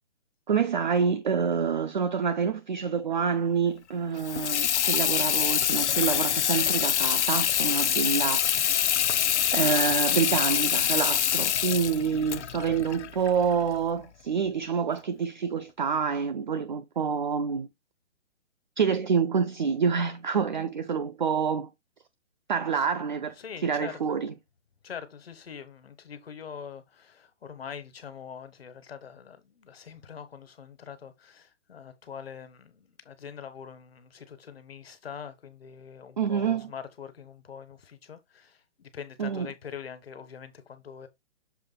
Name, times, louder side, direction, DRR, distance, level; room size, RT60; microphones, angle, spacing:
voice 1, 0.5-8.9 9.5-17.7 18.8-21.7 22.5-23.3 23.6-24.3 36.2-36.7 39.2-39.5, right 6 dB, 40° right, 0.6 m, -27 dB
Water tap faucet / Sink (filling or washing), 4.2-13.8, left 9 dB, 70° left, 0.6 m, -25 dB
voice 2, 23.4-24.2 24.8-41.1, left 7 dB, 55° left, 1.6 m, -43 dB
7.0 x 3.7 x 4.0 m
hypercardioid pair, 170°, 35 cm